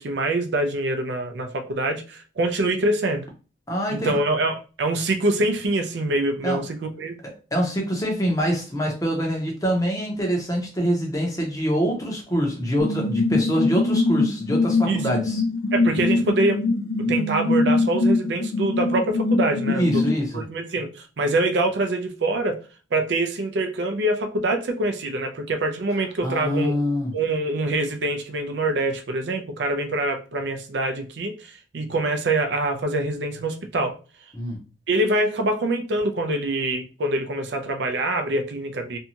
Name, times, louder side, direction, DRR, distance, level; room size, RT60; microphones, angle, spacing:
voice 1, 0.0-3.2 3.9-7.2 14.9-15.0 15.7-16.6 17.1-20.0 20.3-22.6 22.9-26.8 27.1-33.9 34.9-39.0, right 2 dB, 65° right, 5 dB, 0.5 m, -25 dB
voice 2, 3.7-4.2 6.4-6.6 7.2-15.4 19.7-20.4 26.2-27.1 34.3-34.6, equal, 20° left, 0 dB, 0.7 m, -25 dB
sound 1, 12.8-20.1, left 3 dB, 60° left, 0.3 m, -23 dB
2.6 x 2.3 x 2.8 m, 0.34 s
head